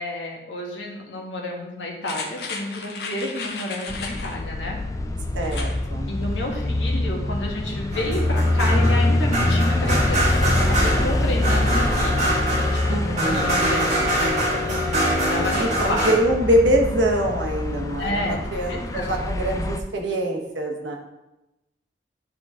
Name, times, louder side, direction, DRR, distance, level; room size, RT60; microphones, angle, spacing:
voice 1, 0.0-4.8 6.1-12.3 12.6-13.8 14.2-14.8 15.3-16.1 18.0-18.4 18.7-19.3, left 1 dB, 85° left, -1 dB, 1.4 m, -30 dB
sound 1, 2.0-4.4 5.4-5.8 6.2-6.3, left 4 dB, 65° left, 0.9 m, -34 dB
sound 2, 3.9-19.8, left 1 dB, 20° left, 0.3 m, -25 dB
voice 2, 5.3-6.1 12.9-13.7 15.6-21.0, right 1 dB, 90° right, 1 dB, 1.2 m, -24 dB
sound 3, 7.9-16.1, right 1 dB, 40° right, 1.7 m, -24 dB
10.0 x 3.9 x 3.6 m, 0.98 s
head